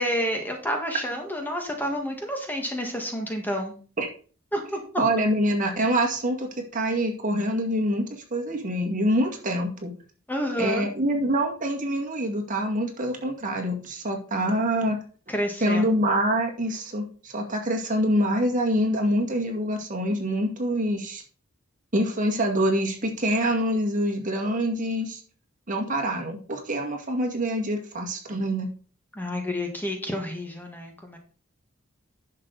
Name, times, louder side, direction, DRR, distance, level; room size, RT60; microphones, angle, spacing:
voice 1, 0.0-3.7 4.5-4.8 10.3-10.9 15.3-15.8 29.1-31.2, equal, 10° left, 2 dB, 1.6 m, -29 dB
voice 2, 5.0-8.1 8.3-9.9 10.6-15.0 15.6-21.2 21.9-25.2 25.7-28.7, equal, 40° right, 2 dB, 2.2 m, -25 dB
10.5 x 6.7 x 4.1 m, 0.39 s
head